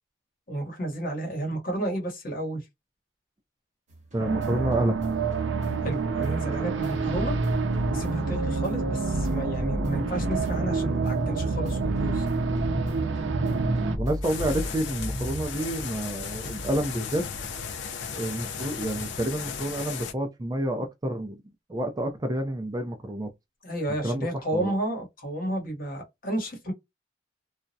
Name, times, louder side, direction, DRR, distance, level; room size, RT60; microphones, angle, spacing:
voice 1, 0.5-2.6 5.8-7.4 7.9-12.3 23.6-26.7, right 1 dB, 50° left, 1.0 m, -31 dB
sound 1, 3.9-16.2 16.5-19.2, equal, 40° right, 0.8 m, -36 dB
voice 2, 4.1-5.0 14.0-17.2 18.2-21.4 21.7-23.3 23.9-24.3 24.5-24.7, right 1 dB, 20° right, 0.4 m, -29 dB
sound 2, 4.2-14.0, right 4 dB, 90° right, 0.5 m, -28 dB
sound 3, 14.2-20.1, left 6 dB, 70° left, 0.5 m, -36 dB
2.3 x 2.0 x 2.6 m
head